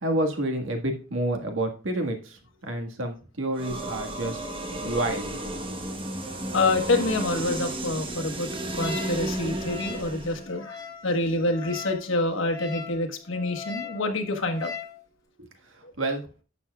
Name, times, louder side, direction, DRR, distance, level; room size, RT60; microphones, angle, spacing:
voice 1, 0.0-5.4 16.0-16.3, right 1 dB, 85° right, 4 dB, 1.7 m, -29 dB
sound 1, 3.5-10.5, right 1 dB, 25° right, 1.2 m, -33 dB
voice 2, 6.5-8.5 8.8-10.8 11.0-14.7, left 2 dB, 80° left, 3 dB, 1.4 m, -27 dB
Wind instrument woodwind instrument, 8.8-15.0, left 5 dB, 20° left, 2.1 m, -40 dB
11.5 x 7.2 x 2.4 m, 0.36 s
head